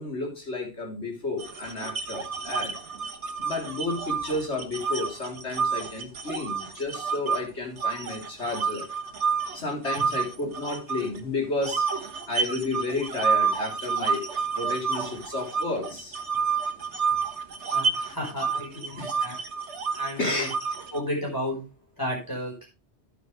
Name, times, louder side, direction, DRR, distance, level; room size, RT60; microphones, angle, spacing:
voice 1, 0.0-2.7 3.4-8.9 9.5-11.9 12.3-14.2 14.5-16.2 18.5-18.6 19.0-19.1 20.2-20.5, left 2 dB, 85° left, 0 dB, 3.9 m, -31 dB
sound 1, 1.4-7.4 7.8-11.2 11.6-21.0, right 5 dB, 80° right, 1.6 m, -29 dB
voice 2, 17.7-19.4 19.9-20.5 20.9-21.6 22.0-22.7, left 1 dB, 15° left, -3 dB, 4.8 m, -32 dB
10.5 x 10.0 x 3.3 m, 0.28 s
omnidirectional pair, 1.1 m